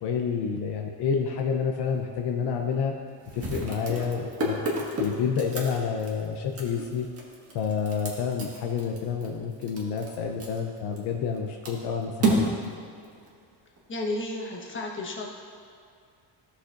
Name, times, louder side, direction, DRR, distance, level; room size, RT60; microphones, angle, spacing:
voice 1, 0.0-2.9 3.3-4.6 5.0-7.1 7.5-12.5, left 6 dB, 65° left, 2 dB, 0.7 m, -29 dB
sound 1, 1.8-2.0 2.3-2.4 3.2-11.4 11.6-13.8, right 2 dB, 30° right, 1.6 m, -31 dB
voice 2, 13.9-15.3, left 2 dB, 25° left, -1 dB, 1.2 m, -32 dB
14.0 x 6.6 x 2.5 m, 2.4 s
cardioid pair, 140°, 44 cm